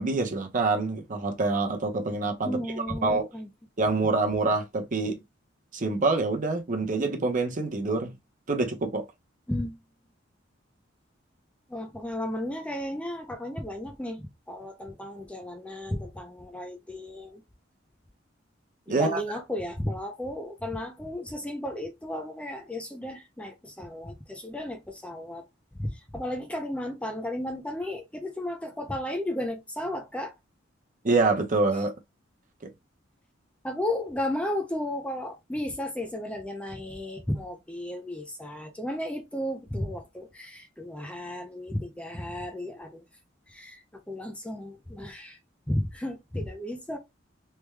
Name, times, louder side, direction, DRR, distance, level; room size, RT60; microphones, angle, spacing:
voice 1, 0.0-3.3 3.8-5.2 5.7-8.1 8.5-9.0 18.9-19.2 31.0-31.9 32.6-32.7, right 3 dB, 45° right, 0.7 m, -26 dB
voice 2, 2.4-3.5 9.5-9.8 11.7-17.4 18.9-25.5 25.8-30.3 33.6-43.0 43.5-45.4 45.7-47.0, left 1 dB, 5° left, 0.4 m, -34 dB
3.3 x 2.2 x 3.1 m
head